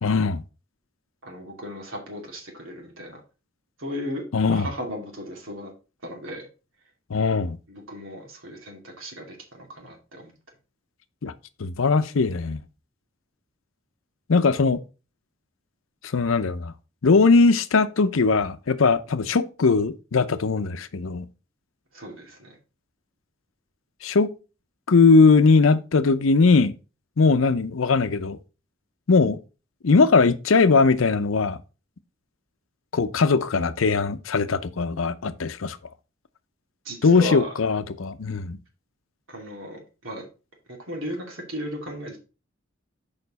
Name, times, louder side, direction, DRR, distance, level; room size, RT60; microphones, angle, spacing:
voice 1, 0.0-0.4 4.3-4.7 7.1-7.6 11.2-11.3 11.6-12.6 14.3-14.8 16.1-16.7 17.0-21.3 24.0-24.3 24.9-26.7 27.2-28.4 29.1-29.4 29.8-31.6 32.9-35.8 37.0-38.6, left 4 dB, 85° left, 0.6 m, -20 dB
voice 2, 1.2-3.2 3.8-4.2 4.5-5.7 6.0-6.5 7.7-10.3 21.9-22.6 36.8-37.5 39.3-40.3 40.9-42.2, equal, 75° right, 2.6 m, -35 dB
6.8 x 5.2 x 4.0 m
head